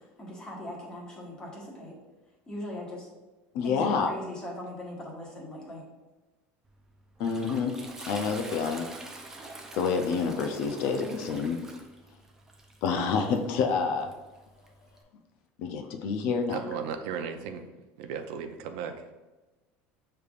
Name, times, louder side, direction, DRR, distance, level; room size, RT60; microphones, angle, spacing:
voice 1, 0.0-1.9 2.5-3.1 3.6-5.8 11.0-11.1, left 1 dB, 15° left, -3 dB, 1.2 m, -40 dB
voice 2, 3.5-4.1 7.2-7.7 8.1-8.9 9.4-9.5 9.7-11.6 12.8-14.1 15.6-16.6, left 5 dB, 60° left, 5 dB, 0.5 m, -28 dB
Toilet flush, 6.7-15.0, right 2 dB, 10° right, 0.4 m, -45 dB
voice 3, 16.5-17.7 18.0-19.0, right 7 dB, 70° right, 6 dB, 0.5 m, -35 dB
6.6 x 3.3 x 2.4 m, 1.1 s
cardioid pair, 160°, 5 cm